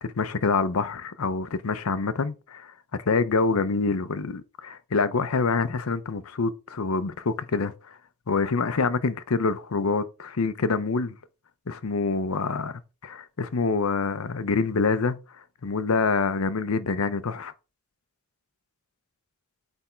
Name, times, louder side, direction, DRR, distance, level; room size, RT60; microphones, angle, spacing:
voice 1, 0.0-2.7 3.1-7.9 8.3-11.1 11.7-15.2 15.6-17.5, left 4 dB, 85° left, 0.7 m, -26 dB
8.3 x 3.5 x 4.4 m
head